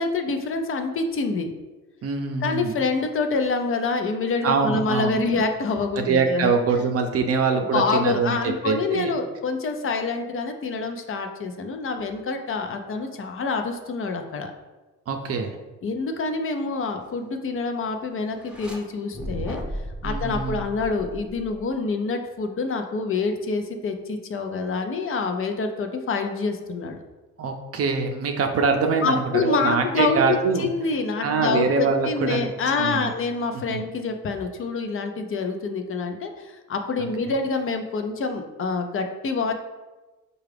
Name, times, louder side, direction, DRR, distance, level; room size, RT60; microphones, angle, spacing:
voice 1, 0.0-1.5 2.4-6.5 7.7-14.5 15.8-27.0 29.0-39.5, left 4 dB, 45° left, 6 dB, 0.5 m, -26 dB
voice 2, 2.0-2.7 4.4-5.2 6.0-8.4 8.6-9.1 15.1-15.5 20.0-20.6 27.4-30.7 31.2-32.5 32.8-33.1 33.7-33.8 37.0-37.3, right 4 dB, 50° right, 5 dB, 0.5 m, -24 dB
sound 1, 18.3-18.8 19.1-21.7, equal, 5° right, 0.7 m, -34 dB
4.7 x 2.3 x 3.3 m, 1.2 s
cardioid pair, 90°, 30 cm